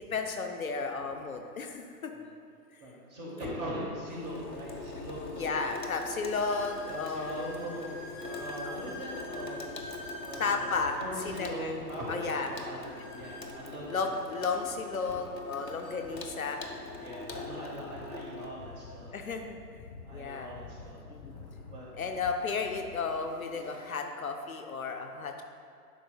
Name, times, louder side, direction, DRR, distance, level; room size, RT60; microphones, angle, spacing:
voice 1, 0.1-2.1 5.4-7.5 8.6-8.9 10.4-11.0 11.3-11.7 12.1-12.9 13.9-16.7 17.3-17.5 19.1-19.6 20.1-20.5 21.1-21.3 22.0-25.4, left 4 dB, 60° left, 4 dB, 0.6 m, -33 dB
voice 2, 2.8-5.5 6.3-6.6 6.9-7.9 8.2-9.6 10.2-12.8 13.1-14.0 16.7-19.1 20.0-21.0 21.7-21.9, equal, 25° right, -4 dB, 1.3 m, -41 dB
sound 1, 4.0-23.3, left 4 dB, 35° left, 1.2 m, -52 dB
Water tap faucet / Sink (filling or washing), 4.2-18.5, left 3 dB, 90° left, 0.8 m, -43 dB
sound 2, 6.2-10.9 12.8-14.4 15.4-15.5 15.8-16.0 16.8-16.9 19.1-19.2 21.3-21.4 22.1-22.4 22.9-23.9, left 1 dB, ahead, 0.6 m, -46 dB
11.0 x 4.5 x 2.2 m, 2.2 s
figure-of-eight pair, 125°, 49 cm